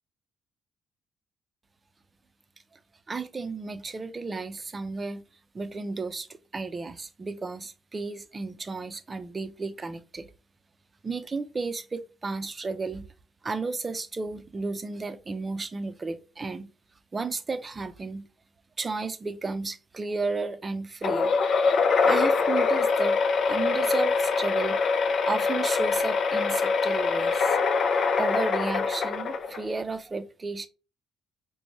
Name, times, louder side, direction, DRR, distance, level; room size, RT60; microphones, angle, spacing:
voice 1, 3.1-5.2 5.5-10.3 11.0-13.1 13.4-16.7 17.1-18.3 18.8-21.7 22.0-23.2 23.5-24.9 25.2-27.6 28.2-30.7, right 3 dB, 35° right, 0.6 m, -33 dB
sound 1, 21.0-29.8, left 4 dB, 60° left, 0.6 m, -24 dB
4.9 x 2.3 x 3.2 m
hypercardioid pair, 55°, 0 cm